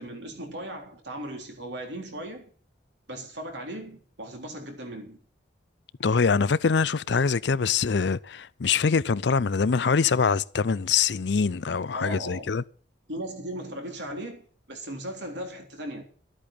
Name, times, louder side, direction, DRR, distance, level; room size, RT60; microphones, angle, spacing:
voice 1, 0.0-2.5 3.1-5.2 11.9-12.6 13.1-16.0, right 1 dB, 65° right, 3.6 m, -37 dB
voice 2, 6.0-12.6, left 5 dB, 65° left, 0.5 m, -24 dB
13.0 x 8.6 x 7.4 m
head